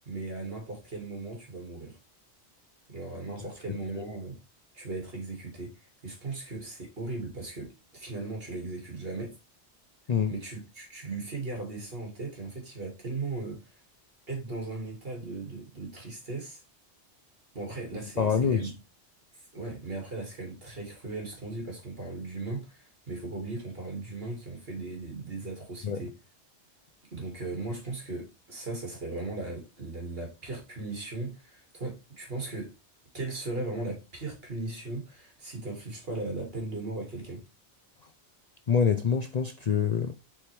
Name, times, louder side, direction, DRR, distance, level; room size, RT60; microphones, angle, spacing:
voice 1, 0.0-2.0 2.9-4.4 4.7-9.4 10.3-13.8 14.3-16.6 17.5-18.8 19.5-26.1 27.1-32.7 33.1-37.4, right 3 dB, 55° right, 2.5 m, -37 dB
voice 2, 18.2-18.7 25.8-26.0 38.7-40.1, left 6 dB, 50° left, 0.5 m, -26 dB
7.6 x 4.4 x 3.4 m
omnidirectional pair, 1.2 m